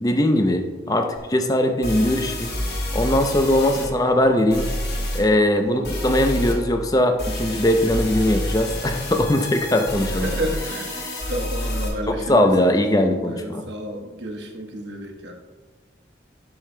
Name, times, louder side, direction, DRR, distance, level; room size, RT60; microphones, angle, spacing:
voice 1, 0.0-2.5 2.9-4.7 5.1-10.3 12.1-13.6, left 1 dB, 20° left, 5 dB, 0.5 m, -20 dB
sound 1, 1.2-1.3 1.8-3.9 4.5-5.2 5.8-6.5 7.2-11.9, left 1 dB, 65° left, 1.6 m, -28 dB
voice 2, 9.9-10.9 11.3-15.3, right 1 dB, 80° right, 2 dB, 1.1 m, -32 dB
10.5 x 6.7 x 2.2 m, 1.3 s
head